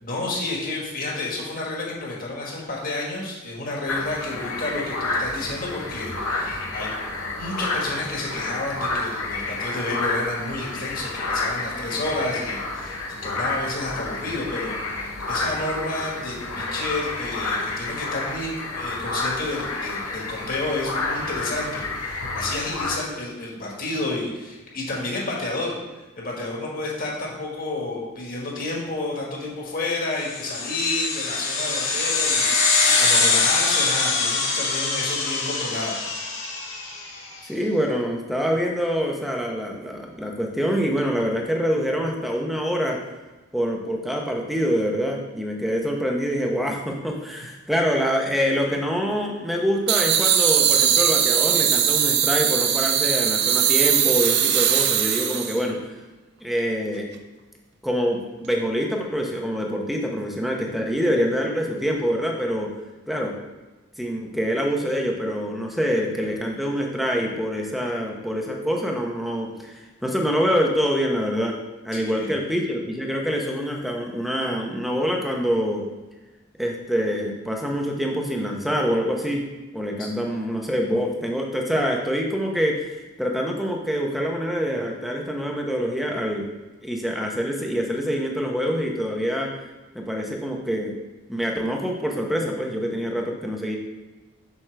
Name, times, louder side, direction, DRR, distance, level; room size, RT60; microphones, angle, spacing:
voice 1, 0.0-6.9 7.4-25.8 26.2-35.9 71.9-72.3 80.0-80.1, left 2 dB, 45° left, -3 dB, 1.7 m, -30 dB
sound 1, 3.9-22.9, left 2 dB, 90° left, 1.4 m, -30 dB
sound 2, 30.3-37.1, left 4 dB, 65° left, 1.8 m, -23 dB
voice 2, 37.4-43.0 43.5-55.8 56.4-57.1 57.8-62.7 63.1-63.3 64.0-71.6 71.8-75.8 76.6-79.4 79.7-86.4 86.8-89.5 89.9-90.9 91.3-93.8, equal, ahead, 0 dB, 0.8 m, -25 dB
sound 3, 49.9-55.6, right 9 dB, 50° right, 0.5 m, -20 dB
7.4 x 6.1 x 3.4 m, 1.2 s
head